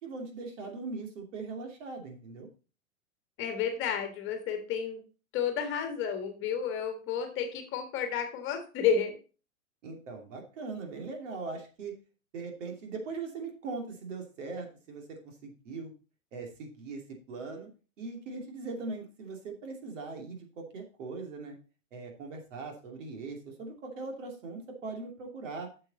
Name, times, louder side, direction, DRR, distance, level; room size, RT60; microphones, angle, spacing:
voice 1, 0.0-2.5 9.8-11.9 12.3-15.9 16.3-17.0 17.3-17.7 18.0-21.5 21.9-25.7, right 4 dB, 60° right, 3 dB, 2.8 m, -40 dB
voice 2, 3.4-5.0 5.3-9.1, left 7 dB, 30° left, 6 dB, 1.6 m, -31 dB
8.1 x 6.9 x 4.1 m, 0.35 s
hypercardioid pair, 130°, 42 cm